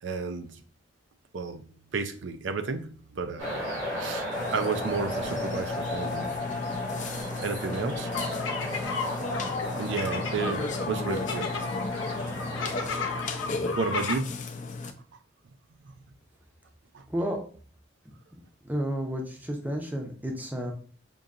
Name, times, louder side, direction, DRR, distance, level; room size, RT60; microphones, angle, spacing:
voice 1, 0.0-0.6 1.3-1.6 1.9-3.6 4.0-6.3 7.4-8.1 9.8-11.5 13.8-14.4 16.9-17.0, right 4 dB, 65° right, 8 dB, 0.4 m, -32 dB
sound 1, 3.4-13.2, equal, 85° right, 1.9 m, -35 dB
Burping eructation, 4.3-14.9, left 3 dB, 40° left, 0.4 m, -34 dB
sound 2, 8.1-14.2, left 4 dB, 80° left, 0.7 m, -35 dB
voice 2, 18.7-20.7, equal, 10° right, 2 dB, 0.6 m, -31 dB
5.3 x 2.7 x 2.4 m, 0.43 s
head